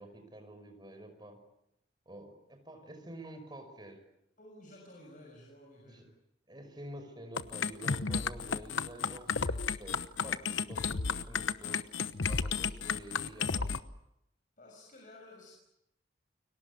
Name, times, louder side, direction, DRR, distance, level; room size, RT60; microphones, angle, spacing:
voice 1, 0.0-1.4 2.1-4.0 5.9-6.0 6.5-11.8 12.3-13.7, right 1 dB, 20° right, 6 dB, 5.5 m, -48 dB
voice 2, 4.4-6.1 14.6-15.5, left 1 dB, 45° left, -1 dB, 6.6 m, -53 dB
sound 1, 7.4-13.8, left 5 dB, 85° left, 1.1 m, -33 dB
30.0 x 23.5 x 8.3 m, 0.82 s
head